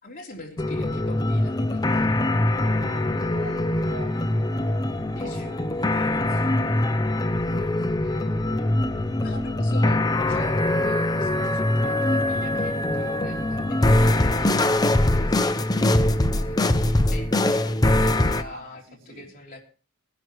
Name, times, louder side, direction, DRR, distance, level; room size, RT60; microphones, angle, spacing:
voice 1, 0.0-2.1 5.1-5.5 8.0-8.3 8.9-19.6, left 2 dB, 40° left, 3.3 m, -43 dB
sound 1, 0.6-18.4, left 1 dB, 20° left, 0.6 m, -23 dB
voice 2, 2.5-6.9 7.5-7.8 18.4-19.3, right 2 dB, 65° right, 3.2 m, -45 dB
20.5 x 11.0 x 3.1 m
head